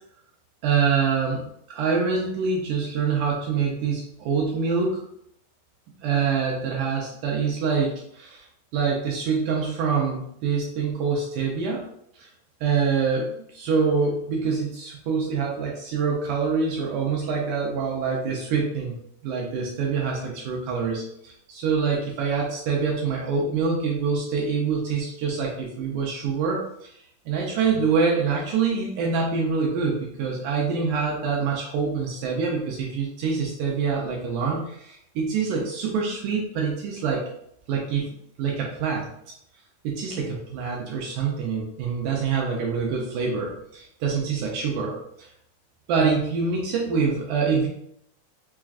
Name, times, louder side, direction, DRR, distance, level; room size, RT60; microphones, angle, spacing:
voice 1, 0.6-1.4 1.7-5.0 6.0-8.5 8.7-11.8 12.2-12.3 12.6-19.0 19.2-26.9 27.3-37.2 37.7-39.1 39.8-45.3 45.9-47.7, right 5 dB, 80° right, -1 dB, 1.9 m, -25 dB
5.8 x 2.4 x 2.4 m, 0.73 s
omnidirectional pair, 4.2 m